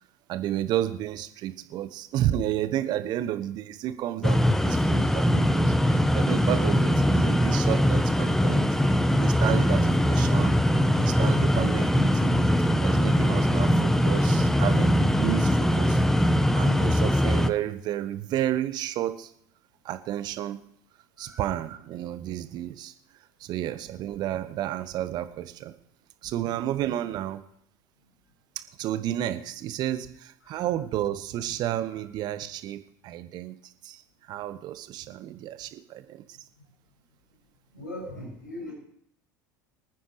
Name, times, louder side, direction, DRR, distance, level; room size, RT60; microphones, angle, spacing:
voice 1, 0.3-8.8 9.2-10.6 11.0-12.5 12.8-19.3 19.8-20.6 21.2-22.9 23.4-25.7 26.2-27.4 28.8-36.4, right 12 dB, 45° right, 11 dB, 1.2 m, -31 dB
sound 1, 4.2-17.5, equal, 5° left, 0.8 m, -22 dB
voice 2, 37.7-38.7, left 1 dB, 85° left, -3 dB, 6.4 m, -39 dB
25.0 x 9.4 x 3.3 m, 0.68 s
figure-of-eight pair, 70°, 10 cm